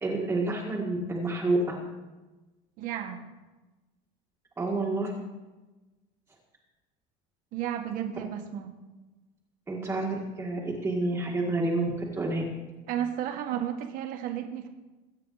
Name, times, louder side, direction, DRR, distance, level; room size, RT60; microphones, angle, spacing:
voice 1, 0.0-1.8 4.6-5.1 9.7-11.9 12.2-12.4, right 2 dB, 15° right, -4 dB, 1.8 m, -28 dB
voice 2, 2.8-3.2 7.5-8.7 12.9-14.7, right 10 dB, 50° right, 5 dB, 1.6 m, -33 dB
22.0 x 9.1 x 4.1 m, 1.2 s
cardioid pair, 165°, 18 cm